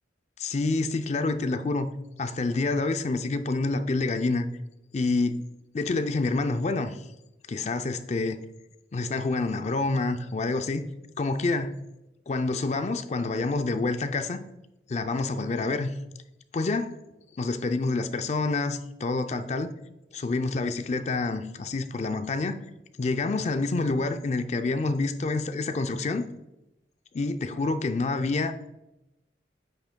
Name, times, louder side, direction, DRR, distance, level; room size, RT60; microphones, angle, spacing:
voice 1, 0.4-1.9 2.2-4.5 4.9-5.5 5.7-7.1 7.5-8.4 8.9-10.8 11.2-11.7 12.3-14.4 14.9-15.9 16.5-16.9 17.4-19.7 20.1-22.6 23.0-26.2 27.1-28.7, left 3 dB, 40° left, 0.4 m, -27 dB
8.8 x 6.0 x 2.2 m
head